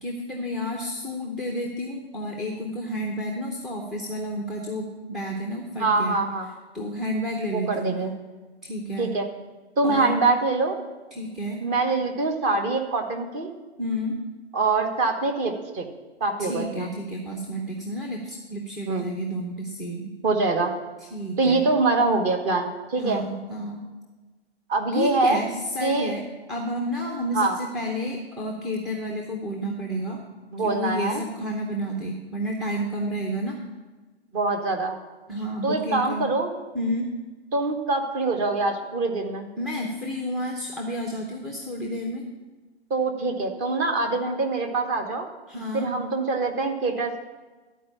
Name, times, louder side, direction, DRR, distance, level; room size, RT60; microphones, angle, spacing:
voice 1, 0.0-6.2 6.7-8.1 8.6-9.1 9.8-10.1 11.1-11.6 13.8-14.2 16.4-20.1 21.1-21.6 23.0-23.8 24.9-26.2 26.5-30.2 30.6-33.6 35.3-36.3 36.7-37.1 39.6-42.3 45.5-45.9, equal, ahead, 0 dB, 0.5 m, -30 dB
voice 2, 5.8-6.5 7.5-8.1 9.0-9.2 9.8-10.8 11.6-13.5 14.5-15.9 16.2-16.9 18.9-19.1 20.2-20.7 21.4-23.2 24.7-25.4 25.8-26.1 27.3-27.6 30.5-31.2 34.3-35.0 35.6-36.5 37.5-39.5 42.9-45.3 45.7-47.2, right 3 dB, 25° right, 4 dB, 1.1 m, -24 dB
12.0 x 4.6 x 8.4 m, 1.2 s
figure-of-eight pair, 120°, 33 cm